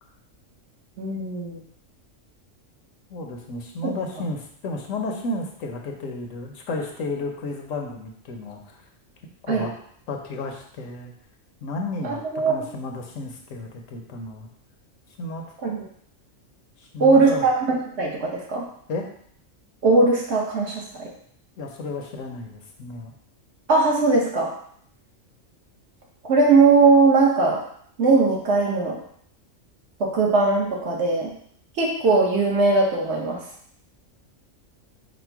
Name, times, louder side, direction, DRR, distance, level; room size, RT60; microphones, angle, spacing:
voice 1, 1.0-1.6 3.8-3.9 9.5-9.6 12.0-12.6 15.6-15.8 17.0-18.6 19.8-21.1 23.7-24.5 26.2-27.6 28.0-29.0 30.0-31.3 31.8-33.4, right 3 dB, 60° right, -3 dB, 1.2 m, -19 dB
voice 2, 3.1-8.8 9.4-9.7 10.1-11.1 11.6-14.5 15.2-15.4 16.8-17.4 18.9-19.0 21.6-23.1, left 2 dB, 80° left, 2 dB, 1.1 m, -32 dB
5.1 x 2.2 x 4.5 m, 0.63 s
omnidirectional pair, 1.3 m